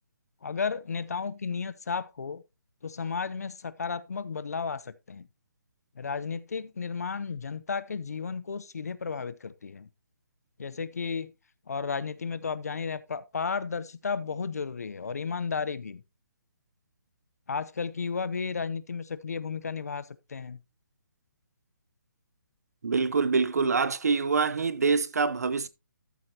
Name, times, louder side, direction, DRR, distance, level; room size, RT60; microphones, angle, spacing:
voice 1, 0.4-2.4 2.8-5.3 6.0-9.9 10.6-11.3 11.7-16.0 17.5-20.6, left 5 dB, 50° left, 0.7 m, -33 dB
voice 2, 22.8-25.7, right 4 dB, 50° right, 0.7 m, -25 dB
13.5 x 7.8 x 2.8 m
hypercardioid pair, 180°, 11 cm